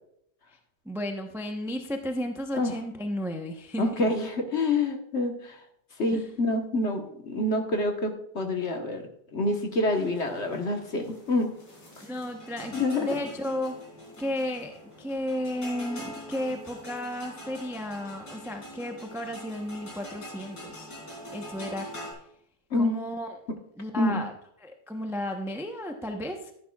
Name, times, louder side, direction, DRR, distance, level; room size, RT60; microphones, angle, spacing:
voice 1, 0.8-4.0 6.1-6.3 12.0-13.8 14.2-20.9 21.3-21.9 22.7-23.4 23.8-24.3 24.6-26.5, left 1 dB, 5° right, 4 dB, 0.3 m, -33 dB
voice 2, 3.8-5.5 6.0-9.0 9.3-11.5 12.7-13.1 22.7-22.9 24.0-24.2, left 2 dB, 45° left, 4 dB, 1.3 m, -27 dB
sound 1, 9.9-22.1, equal, 65° left, 3.9 m, -44 dB
12.0 x 10.5 x 2.4 m, 0.71 s
omnidirectional pair, 1.9 m